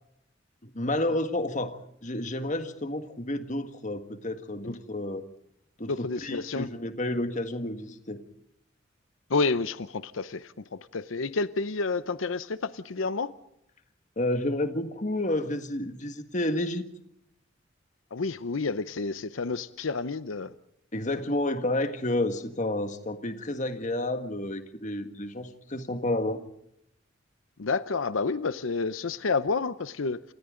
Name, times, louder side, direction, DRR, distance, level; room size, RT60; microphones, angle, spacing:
voice 1, 0.6-5.3 5.8-8.2 14.2-16.9 20.9-26.4, left 1 dB, 40° left, 8 dB, 1.7 m, -30 dB
voice 2, 5.9-6.7 9.3-13.3 18.1-20.5 27.6-30.2, left 4 dB, 85° left, 14 dB, 0.7 m, -29 dB
28.5 x 27.5 x 3.8 m, 0.74 s
head